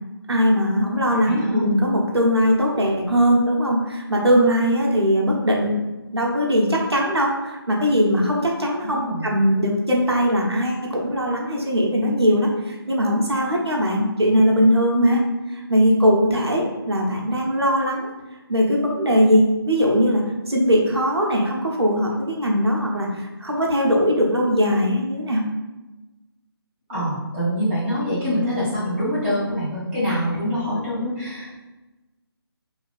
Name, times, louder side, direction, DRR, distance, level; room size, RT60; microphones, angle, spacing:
voice 1, 0.3-5.8 6.1-15.2 15.5-18.1 18.5-25.4, equal, 90° right, -1 dB, 0.7 m, -20 dB
voice 2, 1.2-1.7 8.8-9.3 26.9-31.5, equal, 10° right, -10 dB, 1.3 m, -25 dB
2.7 x 2.6 x 3.2 m, 1.1 s
figure-of-eight pair, 155°, 13 cm